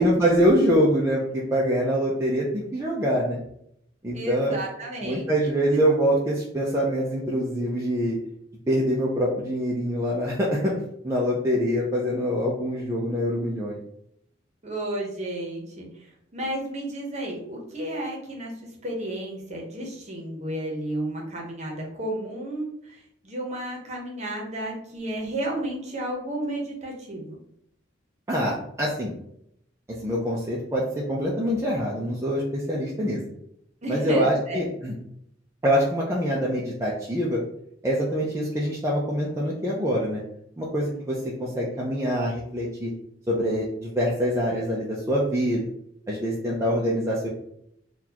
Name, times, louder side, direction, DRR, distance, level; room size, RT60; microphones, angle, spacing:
voice 1, 0.0-3.4 4.0-4.6 5.0-8.2 8.7-10.7 11.0-13.8 28.3-29.1 30.0-30.8 31.1-33.2 33.9-34.9 35.6-37.4 37.8-40.2 40.6-42.9 43.3-45.7 46.1-47.3, equal, 15° right, -4 dB, 0.5 m, -24 dB
voice 2, 4.1-5.8 14.6-27.4 33.8-34.7, right 1 dB, 35° right, -1 dB, 0.9 m, -32 dB
3.9 x 2.4 x 2.8 m, 0.73 s
head